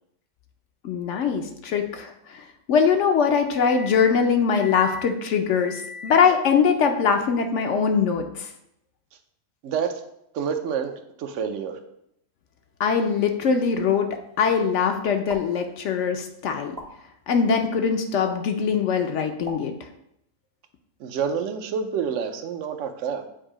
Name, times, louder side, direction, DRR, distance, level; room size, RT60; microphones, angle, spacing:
voice 1, 0.8-2.1 2.7-8.5 12.8-14.1 14.4-16.8 17.3-19.7, left 6 dB, 70° left, 5 dB, 0.8 m, -22 dB
voice 2, 9.6-10.0 10.3-11.8 21.0-23.2, right 6 dB, 70° right, 7 dB, 1.0 m, -28 dB
sound 1, 15.3-15.4 16.7-16.9 18.3-18.4 19.4-19.6, equal, 35° right, 0.8 m, -36 dB
7.3 x 2.6 x 4.9 m, 0.78 s
omnidirectional pair, 1.4 m